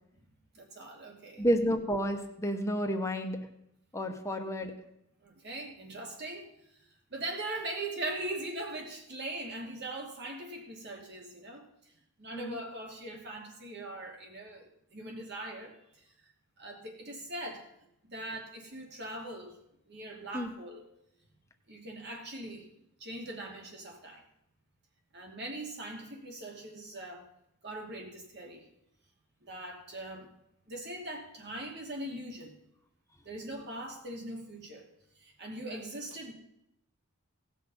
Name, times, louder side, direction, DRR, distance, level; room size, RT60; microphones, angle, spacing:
voice 1, 0.5-1.5 5.2-6.5 7.1-11.7 12.2-15.8 16.6-17.7 18.0-19.6 19.9-20.8 21.7-22.7 23.0-24.2 25.1-27.3 27.6-28.7 29.4-30.3 30.7-32.5 33.2-34.9 35.2-36.3, right 1 dB, 50° right, 1 dB, 2.7 m, -41 dB
voice 2, 1.4-3.4 3.9-4.7 12.3-12.6 20.3-20.5, equal, 15° left, 4 dB, 1.1 m, -30 dB
18.0 x 6.3 x 5.5 m, 0.79 s
head